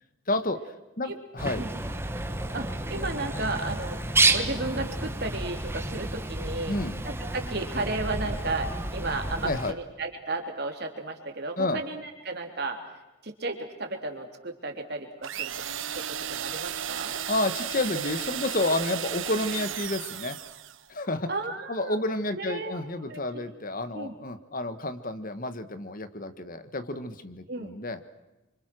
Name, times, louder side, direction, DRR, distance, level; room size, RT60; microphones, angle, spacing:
voice 1, 0.3-0.6 1.0-1.6 6.7-7.0 9.4-9.7 11.6-11.8 17.3-20.4 20.9-21.3 21.7-28.0, left 2 dB, 40° left, 11 dB, 1.4 m, -30 dB
Bird, 1.4-9.7, right 2 dB, 10° right, 1.3 m, -30 dB
voice 2, 2.5-4.0 4.3-6.8 7.0-12.8 13.2-15.6 16.0-17.2 21.3-22.0 22.3-23.5 23.9-24.1 27.5-27.7, right 2 dB, 50° right, 4 dB, 3.6 m, -34 dB
sound 1, 15.2-20.8, right 9 dB, 70° right, 1.2 m, -34 dB
28.5 x 25.5 x 6.3 m, 1.1 s
head